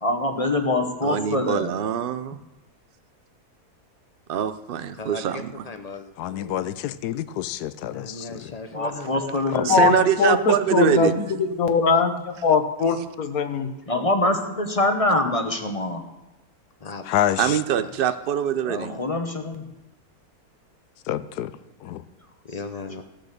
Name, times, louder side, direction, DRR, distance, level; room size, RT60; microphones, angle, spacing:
voice 1, 0.0-1.7 8.7-10.1 13.9-16.0 18.6-19.7, left 2 dB, 25° left, 5 dB, 0.9 m, -24 dB
voice 2, 1.0-2.4 4.3-5.7 9.6-11.1 17.4-18.9, right 9 dB, 70° right, 12 dB, 0.5 m, -24 dB
voice 3, 5.0-6.7 7.9-9.5 16.8-17.0 17.8-17.9 22.4-23.0, left 4 dB, 45° left, 8 dB, 0.5 m, -37 dB
voice 4, 6.2-8.5 9.5-9.9 17.0-17.6 21.1-21.5 21.8-22.0, left 12 dB, 90° left, 15 dB, 1.1 m, -28 dB
voice 5, 9.5-14.1, left 5 dB, 70° left, 8 dB, 1.4 m, -22 dB
15.0 x 6.3 x 6.6 m, 0.98 s
omnidirectional pair, 1.6 m